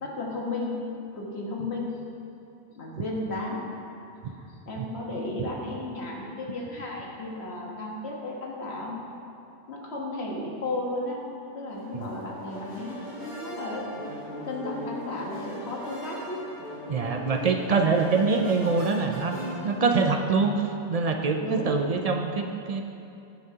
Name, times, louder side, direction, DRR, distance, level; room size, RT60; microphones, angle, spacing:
voice 1, 0.0-0.8 1.2-2.0 2.7-3.6 4.2-9.1 9.7-11.2 11.5-13.8 14.4-16.5 21.4-21.8, left 2 dB, 70° left, -2 dB, 1.4 m, -34 dB
sound 1, 11.7-20.0, left 1 dB, 45° left, 1.9 m, -39 dB
voice 2, 16.9-22.8, right 4 dB, 60° right, 4 dB, 0.4 m, -25 dB
9.9 x 8.8 x 2.8 m, 2.7 s
omnidirectional pair, 1.2 m